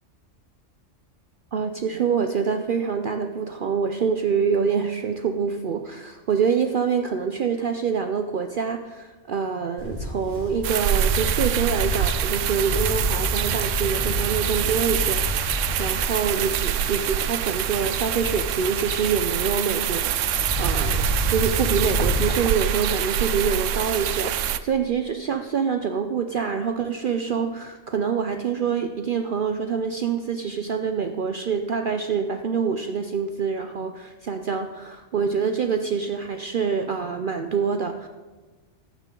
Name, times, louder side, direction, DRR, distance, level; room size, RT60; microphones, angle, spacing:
voice 1, 1.5-38.1, right 6 dB, 55° right, 6 dB, 0.7 m, -26 dB
Livestock farm animals working animals, 9.8-22.3, left 1 dB, 90° left, 2.2 m, -30 dB
sound 1, 10.6-24.6, right 10 dB, 85° right, 0.9 m, -26 dB
14.5 x 10.0 x 3.8 m, 1.3 s
omnidirectional pair, 1.3 m